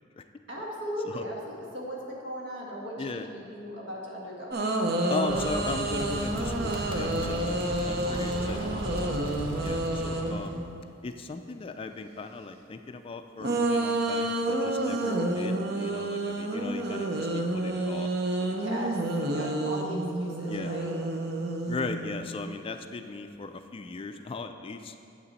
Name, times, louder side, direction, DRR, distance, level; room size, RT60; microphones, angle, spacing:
voice 1, 0.5-4.6 7.9-9.2 18.5-19.0 19.3-21.0, equal, 70° right, -3 dB, 1.8 m, -38 dB
sound 1, 4.5-10.9 13.4-22.5, right 2 dB, 55° right, 0.7 m, -29 dB
voice 2, 5.1-8.7 9.6-10.6 11.0-18.9 19.3-19.5 20.4-20.7 21.7-24.9, left 3 dB, 30° left, 8 dB, 0.3 m, -38 dB
sound 2, 5.3-10.5, equal, 25° right, 1.1 m, -36 dB
8.6 x 7.5 x 4.1 m, 2.5 s
head